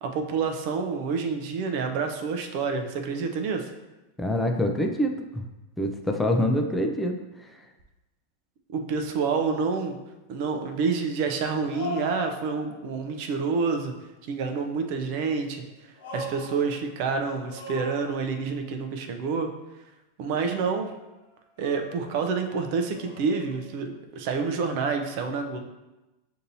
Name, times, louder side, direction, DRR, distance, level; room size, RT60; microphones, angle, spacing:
voice 1, 0.0-3.7 8.7-10.0 10.3-13.9 14.3-15.6 16.1-19.5 20.2-20.9 21.6-25.6, right 5 dB, 55° right, 5 dB, 0.5 m, -28 dB
voice 2, 4.2-5.4 5.8-7.6, equal, 10° left, 3 dB, 0.4 m, -26 dB
sound 1, 9.1-9.2 11.7-12.9 15.5-17.0 17.4-18.6 20.8-21.0 21.6-22.4 22.9-23.9, left 3 dB, 80° left, 1.0 m, -40 dB
6.6 x 2.7 x 2.7 m, 1.0 s
hypercardioid pair, 115°, 0 cm